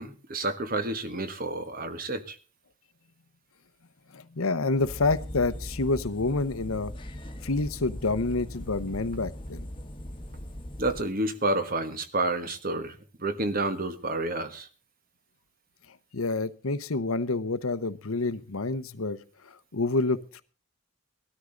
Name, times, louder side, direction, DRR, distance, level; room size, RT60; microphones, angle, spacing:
voice 1, 0.0-2.4 10.8-14.7, right 2 dB, 40° right, 10 dB, 1.3 m, -30 dB
voice 2, 4.1-6.9 7.4-9.6 16.1-20.4, left 3 dB, 75° left, 14 dB, 0.9 m, -28 dB
sound 1, 4.8-11.0, left 1 dB, 25° left, 1.3 m, -39 dB
19.0 x 13.0 x 3.9 m, 0.37 s
head